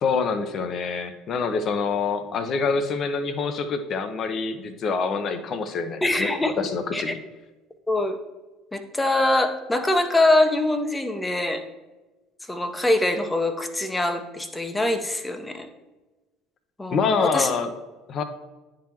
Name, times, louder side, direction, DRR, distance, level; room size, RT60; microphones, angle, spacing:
voice 1, 0.0-7.2 16.9-17.7 18.1-18.2, left 5 dB, 45° left, 9 dB, 0.7 m, -26 dB
voice 2, 6.0-6.5 6.9-7.1 7.9-8.2 8.7-11.6 12.5-15.7 16.8-17.5, left 2 dB, 10° left, 8 dB, 0.8 m, -23 dB
11.0 x 3.8 x 2.9 m, 1.2 s
figure-of-eight pair, 60°, 0 cm